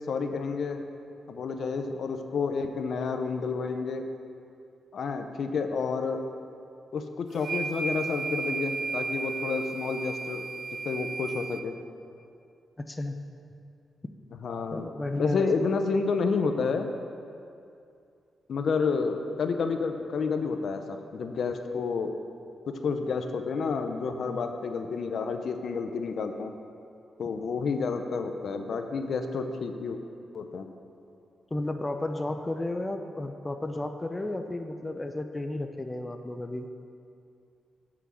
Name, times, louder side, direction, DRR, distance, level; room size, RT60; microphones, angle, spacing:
voice 1, 0.1-0.8 1.3-4.1 4.9-6.2 6.9-10.5 10.8-11.7 14.4-16.9 18.5-22.1 22.7-26.5 27.2-30.0 30.3-30.7, left 4 dB, 65° left, 6 dB, 0.6 m, -30 dB
sound 1, 7.4-11.6, right 4 dB, 65° right, 0.5 m, -34 dB
voice 2, 12.8-13.2 14.7-15.7 31.5-36.7, left 2 dB, 20° left, 6 dB, 0.5 m, -33 dB
8.3 x 5.9 x 6.1 m, 2.5 s
cardioid pair, 90°, 0 cm